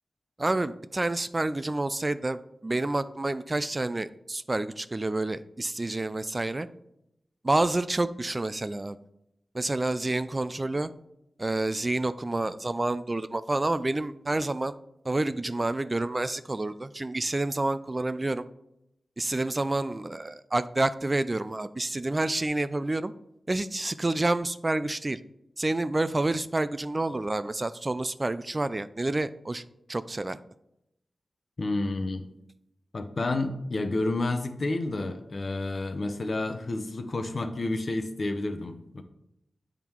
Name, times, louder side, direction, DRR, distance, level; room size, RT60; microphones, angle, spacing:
voice 1, 0.4-6.7 7.4-9.0 9.5-10.9 11.4-14.7 15.0-18.4 19.2-23.1 23.5-25.2 25.6-29.6 29.9-30.4, right 2 dB, 30° right, 14 dB, 0.3 m, -28 dB
voice 2, 31.6-32.2 32.9-39.0, left 2 dB, 60° left, 8 dB, 0.8 m, -30 dB
8.2 x 3.7 x 4.5 m, 0.82 s
cardioid pair, 55°, 0 cm